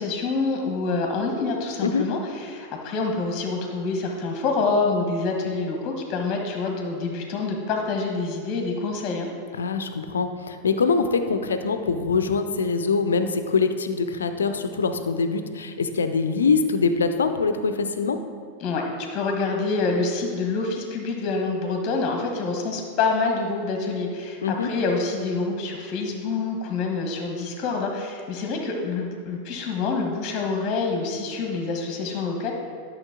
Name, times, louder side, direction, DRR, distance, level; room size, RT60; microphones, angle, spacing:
voice 1, 0.0-9.3 18.6-32.5, left 3 dB, 30° left, 2 dB, 1.2 m, -26 dB
voice 2, 9.6-18.2 24.4-24.7, left 4 dB, 70° left, 9 dB, 0.6 m, -23 dB
11.5 x 6.3 x 3.7 m, 2.1 s
figure-of-eight pair, 90°, 0 cm